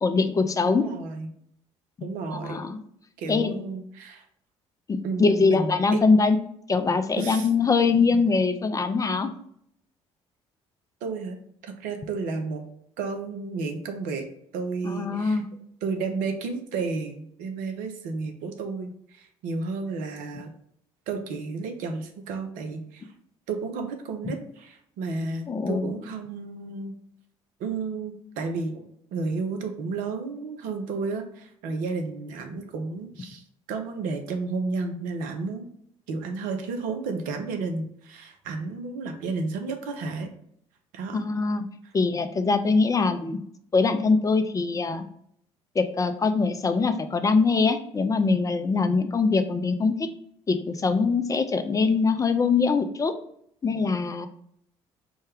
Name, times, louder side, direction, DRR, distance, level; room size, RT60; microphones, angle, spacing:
voice 1, 0.0-0.9 2.3-2.8 3.3-3.6 4.9-6.4 6.7-9.3 14.8-15.5 25.5-25.9 41.1-41.6 41.9-43.4 43.7-45.0 45.8-50.1 50.5-53.1 53.6-54.3, left 4 dB, 20° left, 9 dB, 0.4 m, -23 dB
voice 2, 0.7-1.3 2.0-2.7 3.2-4.2 5.0-6.0 7.2-7.5 11.0-12.7 13.0-14.3 14.5-15.4 15.8-20.5 21.1-23.1 23.5-27.0 27.6-33.4 33.7-35.7 36.1-40.3 40.9-41.2, right 4 dB, 65° right, 5 dB, 0.6 m, -32 dB
4.5 x 2.2 x 3.4 m, 0.68 s
hypercardioid pair, 55°, 15 cm